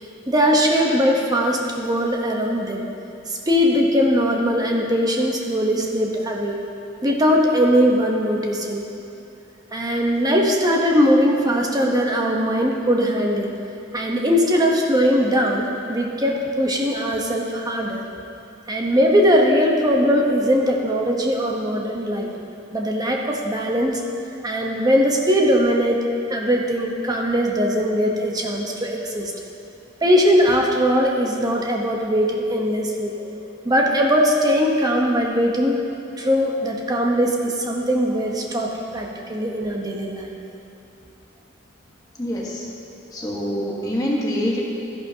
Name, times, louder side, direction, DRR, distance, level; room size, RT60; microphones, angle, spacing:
voice 1, 0.3-2.8 3.3-6.6 7.0-8.9 9.7-13.5 13.9-18.0 18.7-22.3 22.7-24.0 24.4-26.0 26.3-29.3 30.0-33.4 33.6-35.9 36.2-40.3 43.4-43.5, equal, 20° right, 0 dB, 1.0 m, -20 dB
voice 2, 42.2-42.6 43.1-44.6, equal, 20° left, -4 dB, 1.4 m, -25 dB
13.5 x 11.0 x 2.8 m, 2.7 s
head